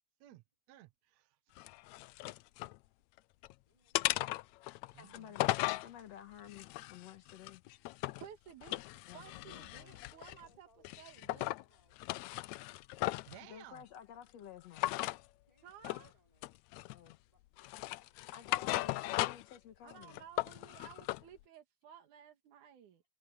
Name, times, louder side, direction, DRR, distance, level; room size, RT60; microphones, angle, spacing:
voice 1, 0.2-1.4 4.9-5.4 13.3-13.8, right 14 dB, 70° right, 2.0 m, -56 dB
sound 1, 1.6-2.8 3.2-3.5 3.9-5.9 6.5-8.3 8.6-10.4 10.8-11.6 12.0-13.4 14.7-15.2 15.8-16.1 16.4-17.1 17.6-19.6 19.9-21.2, left 18 dB, 80° left, 1.8 m, -37 dB
voice 2, 3.7-4.4 9.1-12.0 15.4-19.6, equal, 10° right, 5.6 m, -73 dB
voice 3, 5.0-7.6 9.1-10.0 13.4-15.1 15.9-16.0 16.9-17.2 18.3-20.2, left 9 dB, 60° left, 2.6 m, -53 dB
voice 4, 8.2-10.7 11.0-11.5 15.6-16.1 19.8-23.0, right 9 dB, 90° right, 3.2 m, -55 dB
omnidirectional pair, 3.4 m